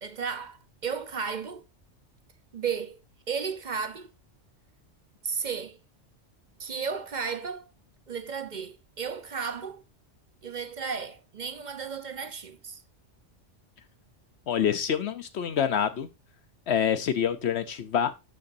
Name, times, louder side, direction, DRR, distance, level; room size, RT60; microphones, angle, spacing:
voice 1, 0.0-1.6 2.5-3.0 3.3-4.1 5.2-5.8 6.6-7.7 8.1-9.8 10.4-12.8, right 6 dB, 45° right, 0.8 m, -34 dB
voice 2, 14.5-16.1 16.7-18.1, left 8 dB, 65° left, 0.9 m, -26 dB
12.0 x 6.8 x 2.6 m
omnidirectional pair, 1.2 m